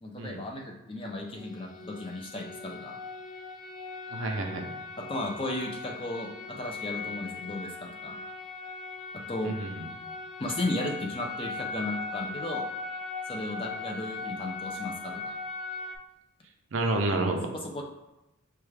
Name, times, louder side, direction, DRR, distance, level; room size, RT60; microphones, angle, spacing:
voice 1, 0.0-3.0 5.1-8.2 9.1-9.5 10.4-12.6 13.3-15.2 17.1-17.2 17.5-17.8, left 1 dB, 25° left, 0 dB, 0.4 m, -35 dB
sound 1, 1.3-16.0, left 3 dB, 80° left, 0.4 m, -39 dB
voice 2, 4.1-4.7 9.4-9.9 16.7-17.5, right 2 dB, 65° right, 3 dB, 0.5 m, -29 dB
4.6 x 2.3 x 3.3 m, 0.93 s
head